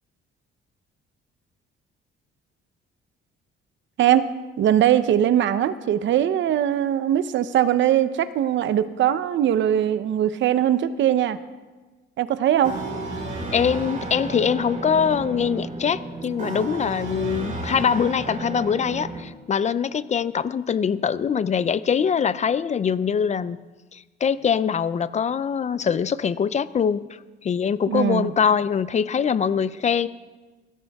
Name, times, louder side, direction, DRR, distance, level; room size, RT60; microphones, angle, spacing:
voice 1, 4.6-11.4 12.2-12.7 27.9-28.3, right 11 dB, 65° right, 13 dB, 0.8 m, -21 dB
sound 1, 12.6-19.2, right 2 dB, 40° right, 4.8 m, -32 dB
voice 2, 13.5-23.6 23.9-27.0 27.4-30.1, left 7 dB, 35° left, 16 dB, 0.5 m, -23 dB
20.0 x 16.5 x 3.6 m, 1.3 s
cardioid pair, 130°, 21 cm